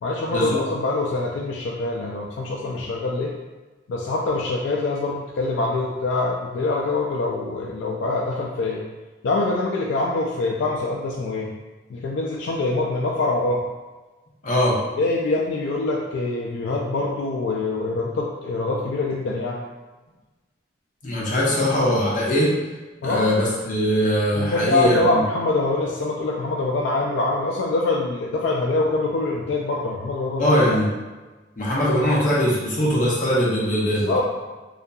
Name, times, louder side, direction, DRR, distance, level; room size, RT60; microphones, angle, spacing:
voice 1, 0.0-3.3 3.9-8.8 9.2-11.5 11.9-13.6 15.0-19.6 21.6-21.7 23.0-23.3 24.4-30.5 34.0-34.2, left 2 dB, 85° left, -2 dB, 0.3 m, -24 dB
voice 2, 14.4-14.8 21.0-22.5 23.0-25.2 30.4-30.9 31.6-34.2, equal, 45° left, -5 dB, 0.7 m, -21 dB
2.7 x 2.4 x 2.2 m, 1.2 s
head